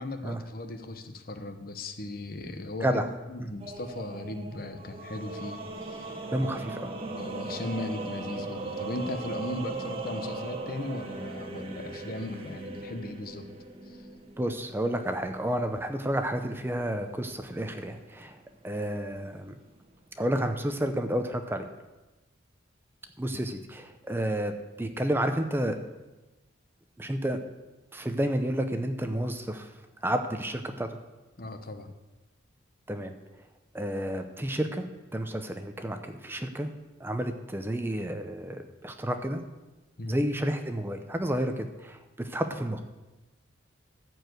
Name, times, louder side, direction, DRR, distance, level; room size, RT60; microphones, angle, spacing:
voice 1, 0.0-5.6 5.8-6.1 6.4-13.5 13.8-14.1 23.3-23.4 31.4-31.9 40.0-40.2, left 1 dB, 45° left, 7 dB, 0.9 m, -37 dB
sound 1, 3.6-19.8, right 2 dB, 30° right, 1.1 m, -39 dB
voice 2, 6.3-6.9 14.4-18.4 18.6-19.5 20.2-21.6 23.2-25.8 27.0-27.4 27.9-29.7 30.0-30.9 32.9-33.1 33.7-34.8 35.1-36.7 37.0-39.4 40.1-42.8, right 1 dB, 10° right, 7 dB, 0.6 m, -30 dB
14.0 x 4.7 x 7.9 m, 1.1 s
head